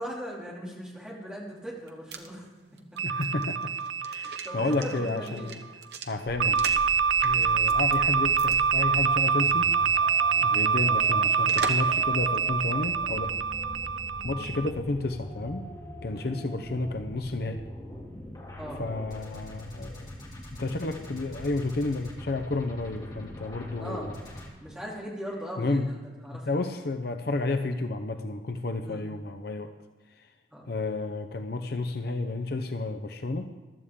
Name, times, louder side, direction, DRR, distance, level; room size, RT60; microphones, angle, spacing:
voice 1, 0.0-2.4 2.9-3.0 4.4-5.5 7.2-7.5 10.3-10.5 13.7-13.9 16.1-16.3 18.6-18.8 23.8-24.2 24.6-26.6 28.8-29.1 30.5-30.7, equal, 5° right, -5 dB, 2.8 m, -39 dB
sound 1, 1.7-6.9 7.2-8.0 8.4-8.6 8.9-9.0 11.5-12.0 12.4-12.5, right 5 dB, 60° right, 1.1 m, -39 dB
voice 2, 3.0-3.7 4.0-5.6 6.0-6.8 7.2-9.8 10.4-13.3 14.2-15.7 16.0-17.6 18.8-20.1 20.6-24.1 25.6-25.9 26.3-29.7 30.7-33.5, left 2 dB, 55° left, 7 dB, 0.7 m, -31 dB
sound 2, 3.0-5.5 6.4-14.7, right 6 dB, 85° right, 0.4 m, -25 dB
sound 3, 6.2-24.5, left 1 dB, 20° left, 2.5 m, -43 dB
15.0 x 12.5 x 3.7 m, 1.3 s
head